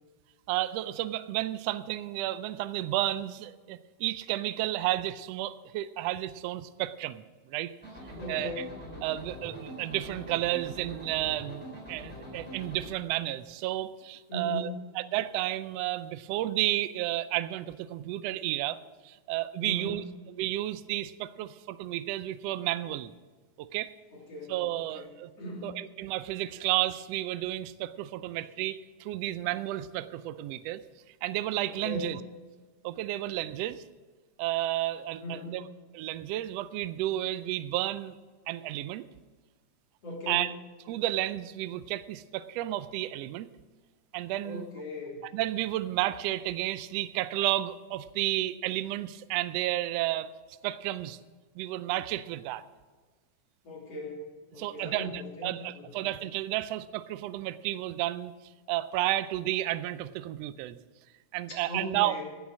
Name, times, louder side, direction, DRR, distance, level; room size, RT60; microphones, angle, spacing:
voice 1, 0.5-7.2 7.5-7.7 8.3-8.6 9.0-18.8 19.0-20.0 20.4-23.1 23.6-23.9 24.5-25.3 25.6-30.8 31.2-32.2 32.8-33.8 34.4-35.6 35.9-38.1 38.5-39.1 40.3-40.5 40.9-43.5 44.1-44.6 45.3-50.3 50.6-51.2 51.6-52.6 54.6-58.3 58.7-60.8 61.3-62.2, right 15 dB, 85° right, 14 dB, 1.4 m, -32 dB
sound 1, 7.8-12.9, equal, 5° left, 4.1 m, -43 dB
voice 2, 8.2-8.7 14.3-14.8 19.6-20.1 24.1-25.1 25.4-25.8 31.7-32.2 35.2-35.7 40.0-40.5 44.4-45.3 53.6-54.2 54.5-56.0 61.5-62.2, left 1 dB, 55° left, -4 dB, 3.9 m, -39 dB
17.0 x 7.3 x 6.2 m, 1.4 s
omnidirectional pair, 3.4 m